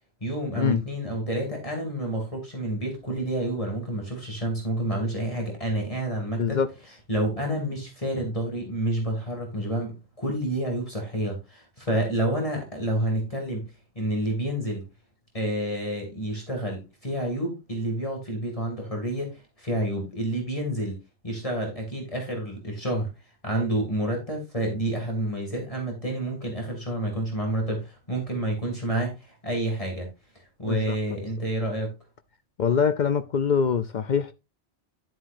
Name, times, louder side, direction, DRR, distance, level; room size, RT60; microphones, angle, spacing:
voice 1, 0.2-6.6 7.1-13.7 14.0-14.9 15.3-21.0 21.2-23.1 23.4-30.1 30.4-31.9, right 1 dB, 30° left, 2.5 m, -29 dB
voice 2, 6.4-6.7 30.7-31.0 32.6-34.3, left 6 dB, 55° left, 0.6 m, -24 dB
11.0 x 7.6 x 2.6 m
omnidirectional pair, 1.2 m